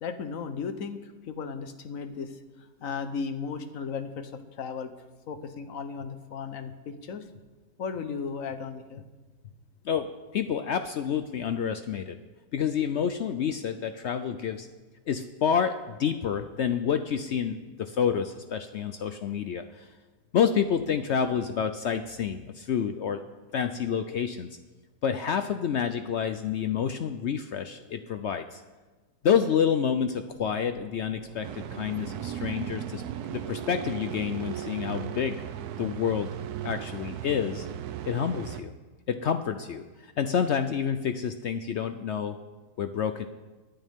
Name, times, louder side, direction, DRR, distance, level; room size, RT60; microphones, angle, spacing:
voice 1, 0.0-2.4 2.8-4.9 5.3-7.2 7.8-9.0, left 5 dB, 60° left, 9 dB, 1.2 m, -35 dB
voice 2, 9.8-12.2 12.5-14.7 15.1-15.7 16.0-19.9 20.3-23.2 23.5-24.6 25.0-28.6 29.2-33.0 33.3-35.4 35.8-36.3 36.6-37.7 38.1-38.7 39.1-42.4 42.8-43.2, left 7 dB, 75° left, 9 dB, 0.6 m, -28 dB
sound 1, 30.3-34.0, right 3 dB, 30° right, 0.8 m, -50 dB
sound 2, 31.4-38.6, right 10 dB, 75° right, 1.2 m, -36 dB
23.5 x 9.2 x 3.6 m, 1.2 s
omnidirectional pair, 1.8 m